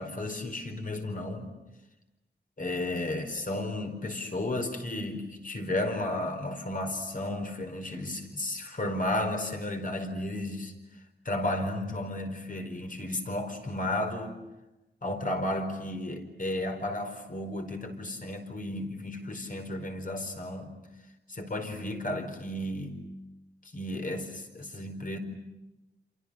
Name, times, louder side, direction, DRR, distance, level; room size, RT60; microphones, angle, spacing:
voice 1, 0.0-1.5 2.6-10.7 11.2-14.4 15.0-20.7 21.3-23.0 23.7-25.2, left 1 dB, 45° left, 5 dB, 4.7 m, -33 dB
29.0 x 28.0 x 6.5 m, 1.0 s
wide cardioid pair, 125°, 19 cm